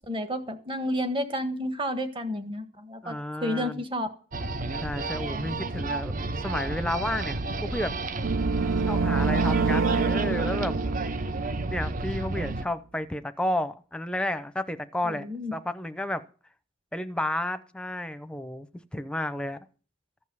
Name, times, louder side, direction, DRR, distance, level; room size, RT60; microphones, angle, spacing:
voice 1, 0.1-4.1 5.8-6.0 15.0-15.5, equal, 25° right, 1.5 m, -31 dB
voice 2, 3.0-3.8 4.8-6.1 6.4-8.0 8.9-10.8 11.7-15.3 15.5-16.2 16.9-18.7 18.9-19.6, left 1 dB, 5° left, 0.7 m, -31 dB
sound 1, 4.3-12.7, right 2 dB, 40° right, 0.7 m, -32 dB
sound 2, 8.2-12.2, right 4 dB, 80° right, 0.6 m, -27 dB
14.5 x 5.4 x 9.6 m
head